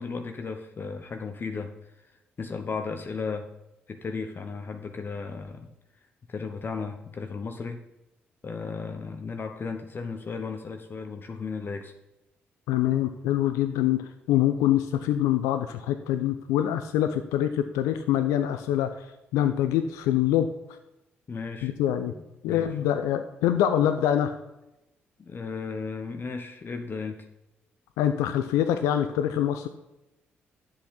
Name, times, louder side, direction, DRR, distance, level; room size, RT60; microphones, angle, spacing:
voice 1, 0.0-2.0 2.4-3.5 3.9-5.7 6.3-7.8 8.4-11.9 21.3-21.7 22.1-22.7 25.2-27.3, left 4 dB, 35° left, 6 dB, 0.9 m, -35 dB
voice 2, 12.7-14.0 14.3-19.1 19.3-20.5 21.6-22.1 22.4-24.3 28.0-29.7, left 11 dB, 65° left, 9 dB, 0.5 m, -25 dB
10.5 x 7.6 x 4.1 m, 0.93 s
figure-of-eight pair, 40°, 6 cm